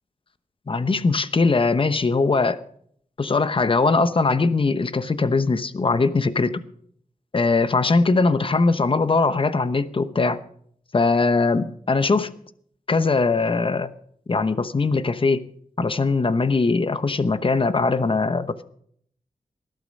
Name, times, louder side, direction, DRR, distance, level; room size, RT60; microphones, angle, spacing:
voice 1, 0.7-2.6 3.2-6.6 7.3-10.4 10.9-12.3 12.9-13.9 14.3-15.4 15.8-18.6, left 3 dB, 40° left, 13 dB, 0.9 m, -21 dB
19.0 x 12.0 x 5.4 m, 0.65 s
wide cardioid pair, 125°, 14 cm